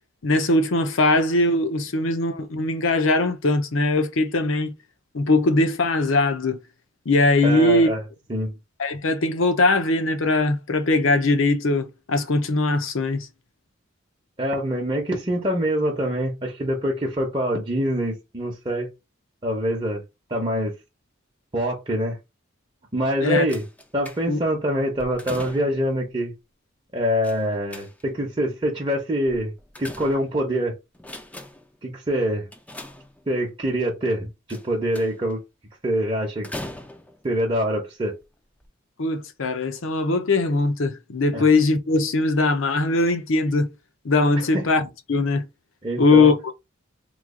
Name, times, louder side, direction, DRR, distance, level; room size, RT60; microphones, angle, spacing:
voice 1, 0.2-4.7 5.1-6.6 7.1-7.9 8.8-13.3 23.2-23.4 24.3-24.4 39.0-43.7 44.0-45.5 46.0-46.5, left 2 dB, 75° left, 0.7 m, -20 dB
voice 2, 7.4-8.0 8.3-8.5 14.4-18.9 19.4-20.0 20.3-20.7 21.5-22.2 22.9-23.6 23.9-26.3 26.9-29.5 29.8-30.8 31.8-32.5 33.3-35.4 35.8-36.5 37.2-38.2 41.3-41.4 44.5-44.7 45.8-46.3, equal, 25° right, 0.8 m, -25 dB
sound 1, 23.5-24.5 25.0-25.9 27.2-28.3 29.3-30.6 30.9-31.8 32.5-33.5 34.5-35.3 36.4-37.3 38.1-38.2 38.6-38.7, left 1 dB, 5° left, 0.4 m, -40 dB
3.1 x 2.4 x 3.6 m
head